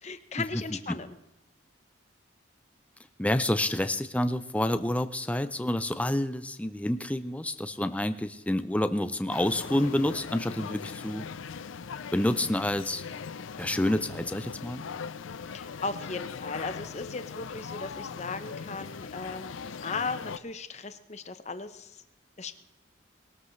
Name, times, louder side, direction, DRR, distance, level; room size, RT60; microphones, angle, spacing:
voice 1, 0.0-1.2 15.5-19.5 19.8-22.0 22.4-22.6, left 4 dB, 35° left, 10 dB, 0.8 m, -37 dB
voice 2, 3.2-11.2 12.1-13.0 13.6-14.8, left 1 dB, 5° left, 11 dB, 0.5 m, -28 dB
sound 1, 9.3-20.4, left 6 dB, 85° left, 0.5 m, -40 dB
20.5 x 13.0 x 3.2 m, 0.93 s
head